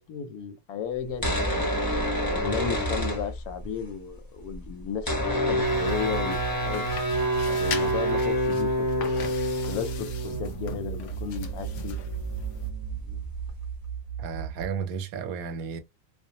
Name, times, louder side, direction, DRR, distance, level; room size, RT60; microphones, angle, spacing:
voice 1, 0.0-1.7 2.2-6.4 6.6-6.9 7.5-9.3 9.7-12.0, left 7 dB, 90° left, 1.1 m, -34 dB
sound 1, 1.1-3.8 4.1-4.2 4.3-13.8, equal, 25° left, 0.5 m, -28 dB
sound 2, 5.4-14.7, right 8 dB, 60° right, 0.8 m, -36 dB
sound 3, 5.6-12.7, left 6 dB, 65° left, 0.8 m, -40 dB
voice 2, 14.2-15.8, right 6 dB, 85° right, 1.1 m, -33 dB
2.5 x 2.1 x 2.7 m
omnidirectional pair, 1.5 m